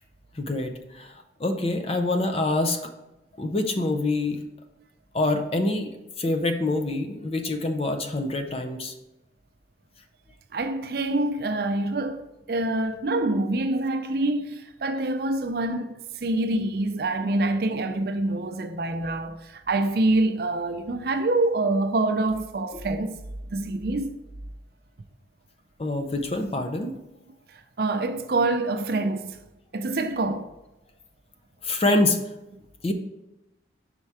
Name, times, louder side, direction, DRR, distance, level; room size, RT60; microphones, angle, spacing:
voice 1, 0.4-1.1 1.4-2.9 3.4-4.4 5.1-5.9 6.2-8.9 25.8-26.9 31.6-32.2 32.8-32.9, left 2 dB, 30° left, 0.6 m, -25 dB
voice 2, 10.5-23.2 23.5-24.1 27.8-29.4 29.7-30.5, right 2 dB, 55° right, 0.5 m, -26 dB
5.5 x 4.4 x 4.7 m
head